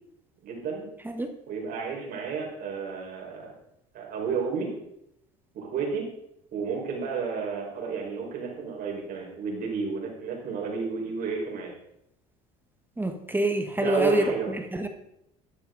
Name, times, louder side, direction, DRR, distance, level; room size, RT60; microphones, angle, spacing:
voice 1, 0.4-0.9 1.5-3.5 3.9-4.7 5.5-6.1 6.5-11.7 13.7-14.5, right 5 dB, 55° right, -1 dB, 5.1 m, -31 dB
voice 2, 13.0-14.3 14.7-14.9, right 1 dB, 10° right, 6 dB, 1.4 m, -26 dB
14.0 x 10.0 x 4.0 m, 0.79 s
supercardioid pair, 90°, 18 cm